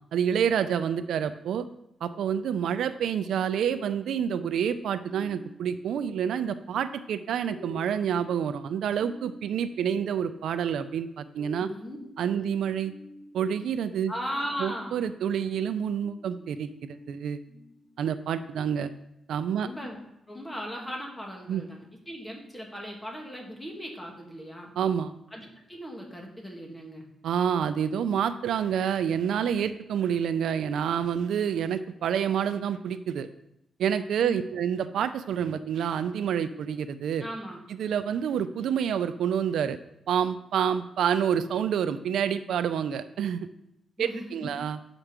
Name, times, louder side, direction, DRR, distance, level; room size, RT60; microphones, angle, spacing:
voice 1, 0.1-1.6 2.0-11.7 12.2-12.9 13.3-14.1 14.6-17.4 18.0-18.9 19.3-19.7 21.5-21.6 24.8-25.1 27.2-33.3 33.8-37.2 37.8-39.8 40.1-43.5 44.0-44.8, right 8 dB, 85° right, 11 dB, 0.5 m, -28 dB
sound 1, 2.1-18.5, left 3 dB, 60° left, 1.3 m, -52 dB
voice 2, 11.6-12.0 12.3-12.5 14.1-15.1 19.6-20.0 20.3-24.7 25.3-27.1 34.2-34.4 37.2-37.6 44.0-44.5, equal, 10° left, 0 dB, 1.9 m, -38 dB
7.5 x 5.2 x 6.0 m, 0.83 s
cardioid pair, 120°, 0 cm